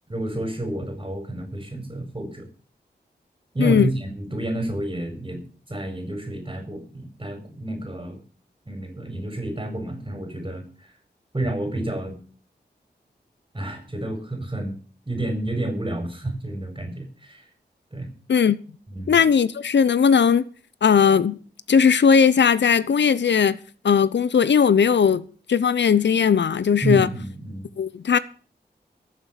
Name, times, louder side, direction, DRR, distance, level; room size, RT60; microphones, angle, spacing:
voice 1, 0.1-2.5 3.5-5.4 5.7-8.2 8.7-10.9 11.3-12.2 13.5-14.7 15.1-17.5 17.9-18.1 18.9-19.2 26.8-27.7, right 1 dB, 25° right, 4.9 m, -29 dB
voice 2, 3.6-3.9 18.3-18.6 19.1-20.4 20.8-21.4 21.7-23.6 23.8-27.1 27.8-28.2, left 6 dB, 85° left, 0.8 m, -18 dB
14.0 x 7.7 x 8.4 m
wide cardioid pair, 60°, 18 cm